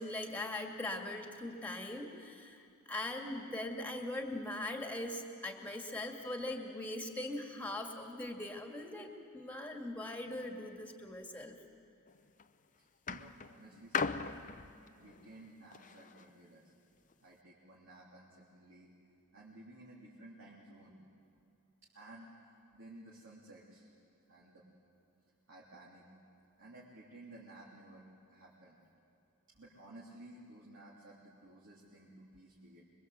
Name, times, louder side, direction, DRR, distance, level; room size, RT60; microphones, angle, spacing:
voice 1, 0.0-11.6, left 1 dB, 5° left, 4 dB, 2.1 m, -41 dB
sound 1, 12.1-12.4 13.1-16.3 17.1-17.2, left 5 dB, 35° left, 0.6 m, -39 dB
voice 2, 12.8-14.5 15.0-16.7 17.2-18.9 19.3-21.0 21.9-22.3 22.7-24.6 25.5-26.0 26.6-28.8 29.5-32.8, right 1 dB, 55° right, -5 dB, 3.3 m, -55 dB
25.5 x 22.5 x 8.1 m, 2.5 s
head